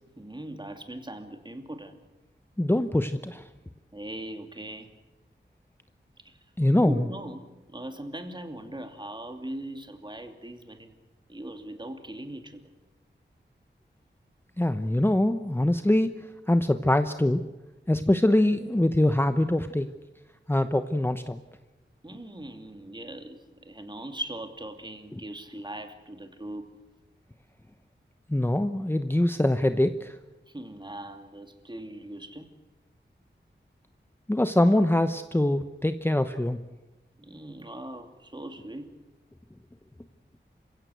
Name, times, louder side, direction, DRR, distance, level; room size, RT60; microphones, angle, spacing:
voice 1, 0.2-2.0 3.9-4.9 6.2-6.4 6.8-11.0 11.3-12.7 22.0-26.7 30.5-32.5 37.2-38.9, right 1 dB, 25° right, 6 dB, 2.7 m, -40 dB
voice 2, 2.6-3.4 6.6-7.1 14.6-16.1 16.5-17.4 17.9-19.9 20.5-21.4 28.3-30.2 34.3-36.6, left 1 dB, 10° left, 9 dB, 0.9 m, -23 dB
28.5 x 16.5 x 8.1 m, 1.1 s
wide cardioid pair, 65°, 19 cm